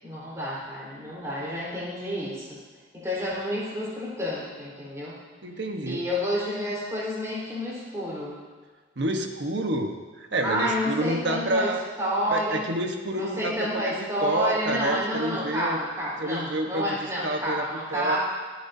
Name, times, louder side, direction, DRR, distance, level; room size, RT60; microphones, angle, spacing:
voice 1, 0.0-2.6 2.9-5.2 5.8-8.4 10.4-11.7 12.0-12.7 13.1-18.2, equal, 15° right, -7 dB, 4.3 m, -29 dB
voice 2, 5.4-6.0 9.0-11.8 12.3-15.8 16.2-17.6 17.9-18.2, right 1 dB, 65° right, 4 dB, 1.2 m, -29 dB
24.5 x 9.5 x 2.8 m, 1.4 s
head